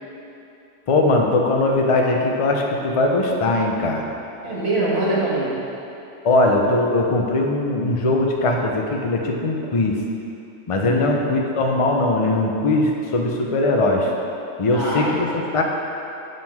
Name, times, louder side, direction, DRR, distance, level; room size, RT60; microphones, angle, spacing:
voice 1, 0.9-4.0 6.2-10.0 10.7-14.1 14.6-15.6, left 2 dB, 35° left, 1 dB, 0.5 m, -20 dB
voice 2, 4.4-5.6 10.8-11.1 14.7-15.2, right 2 dB, 55° right, -8 dB, 1.8 m, -23 dB
7.6 x 3.7 x 6.0 m, 2.9 s
omnidirectional pair, 1.3 m